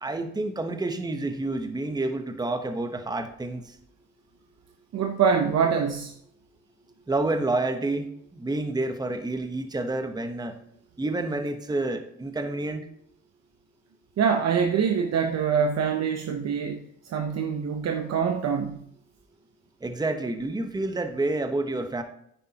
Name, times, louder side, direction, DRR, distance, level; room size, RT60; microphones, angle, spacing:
voice 1, 0.0-3.6 7.1-8.1 8.3-10.5 11.0-12.9 19.8-22.0, right 2 dB, 15° right, 1.0 m, -29 dB
voice 2, 4.9-6.1 14.2-18.8, right 6 dB, 60° right, 0.8 m, -25 dB
10.0 x 9.3 x 2.9 m
cardioid pair, 90°, 30 cm